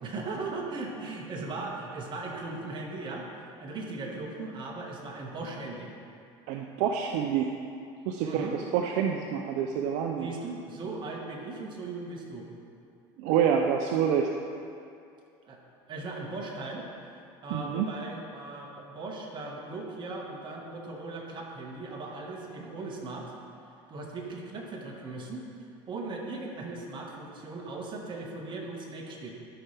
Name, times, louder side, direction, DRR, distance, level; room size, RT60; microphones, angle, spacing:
voice 1, 0.0-3.3 3.6-5.9 8.2-8.6 10.2-12.5 15.4-15.6 15.9-16.9 17.4-23.3 23.9-29.3, right 3 dB, 40° right, -1 dB, 1.6 m, -38 dB
voice 2, 6.5-7.5 8.1-10.3 13.2-14.3 17.5-17.9, right 8 dB, 70° right, 3 dB, 0.5 m, -27 dB
12.5 x 5.6 x 3.4 m, 2.5 s
supercardioid pair, 100°, 12 cm